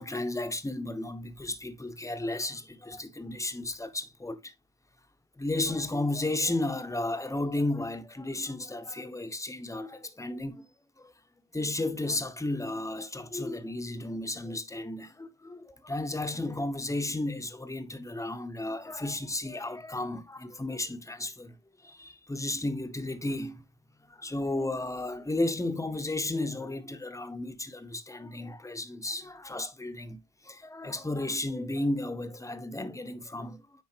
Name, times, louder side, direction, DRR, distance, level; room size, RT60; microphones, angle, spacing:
voice 1, 0.0-4.5 5.4-10.7 11.0-11.1 11.5-21.5 21.8-23.6 24.1-30.2 30.4-33.6, left 2 dB, 10° left, 1.0 m, -33 dB
9.8 x 3.9 x 2.8 m
cardioid pair, 90°, 30 cm